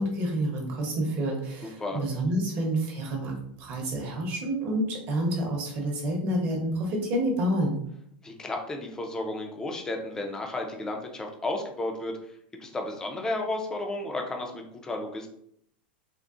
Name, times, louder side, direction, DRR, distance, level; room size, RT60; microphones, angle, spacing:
voice 1, 0.0-7.8, right 1 dB, 40° right, 0 dB, 0.8 m, -28 dB
voice 2, 1.6-2.0 8.2-12.2 12.6-15.3, left 2 dB, 10° left, 2 dB, 0.4 m, -33 dB
3.7 x 2.0 x 2.4 m, 0.70 s
supercardioid pair, 145°, 5 cm